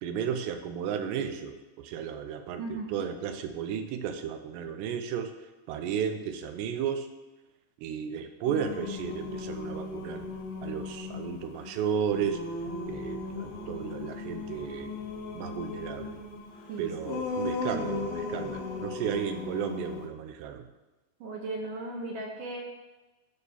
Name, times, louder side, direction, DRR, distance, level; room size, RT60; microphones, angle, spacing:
voice 1, 0.0-5.3 5.7-7.1 7.8-10.3 10.6-12.4 12.9-14.9 15.3-16.2 16.8-20.6, right 8 dB, 90° right, 7 dB, 2.9 m, -33 dB
voice 2, 2.6-2.9 16.7-17.1 21.2-22.6, right 2 dB, 65° right, 0 dB, 2.3 m, -37 dB
Singing, 8.4-20.1, left 3 dB, 70° left, 2.9 m, -37 dB
11.5 x 4.4 x 7.0 m, 1.1 s
omnidirectional pair, 4.7 m